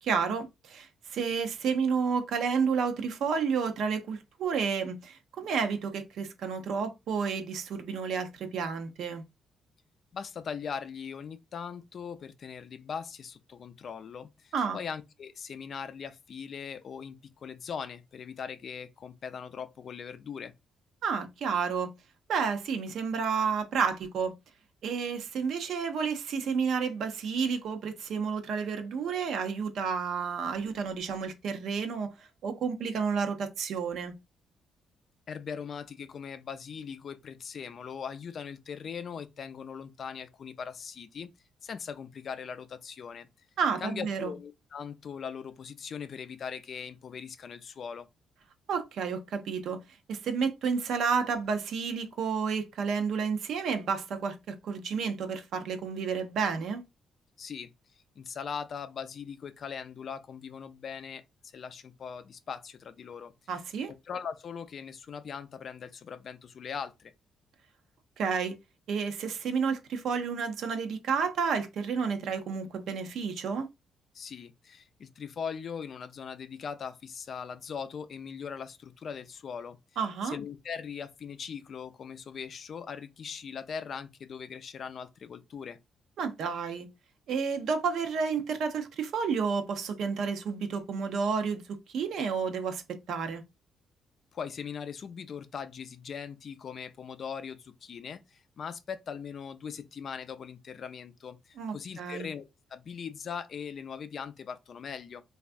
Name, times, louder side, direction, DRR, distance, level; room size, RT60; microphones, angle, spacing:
voice 1, 0.0-9.2 14.5-14.8 21.0-21.9 22.3-24.3 24.8-34.1 43.6-44.4 48.7-49.8 50.1-56.8 63.5-63.9 68.2-68.6 68.9-73.7 80.0-80.4 86.2-86.9 87.3-92.8 93.1-93.4 101.6-102.3, right 6 dB, 70° right, 0.5 m, -31 dB
voice 2, 10.1-20.5 35.3-41.3 41.6-43.3 43.8-48.1 57.4-57.7 58.2-61.2 61.5-63.6 64.0-67.1 74.1-79.8 80.2-85.8 94.3-102.4 102.7-105.2, left 6 dB, 55° left, 0.3 m, -40 dB
3.2 x 2.3 x 2.5 m
cardioid pair, 90°, 0 cm